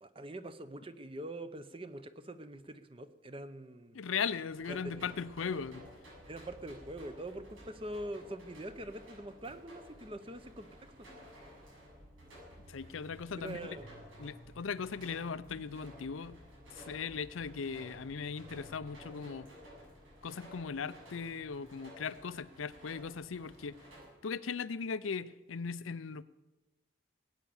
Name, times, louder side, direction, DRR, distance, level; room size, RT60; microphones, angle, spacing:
voice 1, 0.0-4.1 4.7-5.1 6.3-10.9 13.3-13.9, right 1 dB, 25° right, 11 dB, 0.8 m, -44 dB
voice 2, 3.9-5.9 12.7-13.8 14.2-16.4 16.8-19.5 20.2-23.8 24.2-26.2, left 6 dB, 85° left, 15 dB, 0.6 m, -38 dB
sound 1, 4.5-24.1, equal, 90° right, 7.2 m, -54 dB
19.5 x 9.2 x 7.1 m, 1.1 s
head